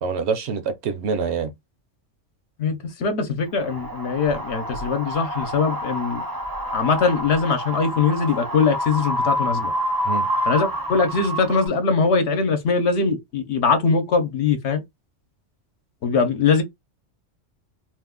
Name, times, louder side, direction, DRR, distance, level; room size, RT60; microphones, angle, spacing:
voice 1, 0.0-1.5 10.0-10.3, right 5 dB, 65° right, 0.8 m, -25 dB
voice 2, 2.6-6.2 6.7-9.7 10.5-14.8 16.0-16.6, left 5 dB, 65° left, 1.0 m, -21 dB
Wind, 3.6-11.7, equal, 25° right, 0.5 m, -28 dB
2.6 x 2.3 x 3.6 m
omnidirectional pair, 1.3 m